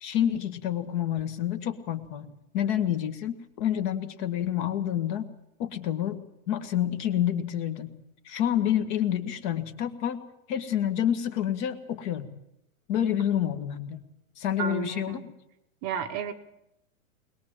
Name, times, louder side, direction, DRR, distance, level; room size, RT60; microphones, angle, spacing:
voice 1, 0.0-5.3 5.6-7.9 8.3-10.2 10.5-12.3 12.9-14.0 14.4-15.3, left 10 dB, 35° left, 9 dB, 1.9 m, -28 dB
voice 2, 14.6-15.3 15.8-16.3, right 8 dB, 25° right, 6 dB, 1.1 m, -32 dB
21.5 x 21.0 x 7.4 m, 0.84 s
supercardioid pair, 170°, 42 cm